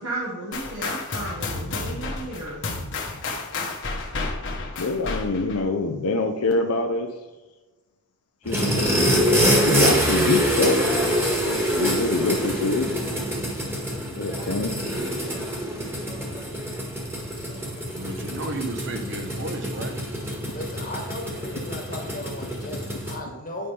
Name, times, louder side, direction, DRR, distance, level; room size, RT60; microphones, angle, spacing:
voice 1, 0.0-2.7, right 2 dB, 70° right, -4 dB, 1.5 m, -33 dB
sound 1, 0.5-5.6, left 3 dB, 55° left, 1.1 m, -31 dB
voice 2, 4.8-7.1 8.4-10.8 11.8-12.9 14.2-14.7, left 3 dB, 80° left, 2 dB, 0.6 m, -25 dB
sound 2, 8.4-23.2, equal, 10° right, 1.5 m, -25 dB
voice 3, 18.0-20.4, right 2 dB, 55° right, 6 dB, 0.9 m, -34 dB
voice 4, 20.5-23.7, left 1 dB, 40° left, 1 dB, 1.4 m, -36 dB
9.2 x 5.6 x 3.4 m, 1.2 s
head